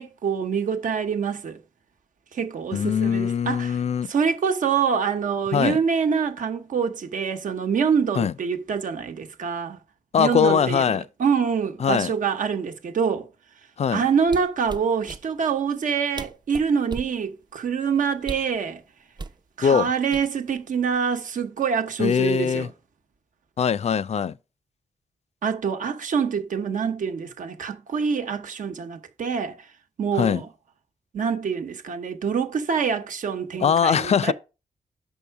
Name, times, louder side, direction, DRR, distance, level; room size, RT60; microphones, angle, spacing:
voice 1, 0.0-1.6 2.3-3.8 4.1-9.8 10.2-13.3 13.9-18.8 19.6-22.7 25.4-29.7 30.0-30.5 31.1-34.3, right 6 dB, 75° right, 1.1 m, -25 dB
voice 2, 2.7-4.1 5.5-5.8 8.2-8.3 10.1-11.1 11.8-12.1 13.8-14.0 19.6-19.9 22.0-22.7 23.6-24.4 30.1-30.4 33.6-34.3, left 7 dB, 50° left, 0.4 m, -21 dB
sound 1, 14.2-15.2 15.9-17.2 18.2-18.6 19.2-19.4 20.1-20.6 20.9-21.2, right 3 dB, 30° right, 0.5 m, -36 dB
6.6 x 5.5 x 4.6 m
cardioid pair, 70°, 14 cm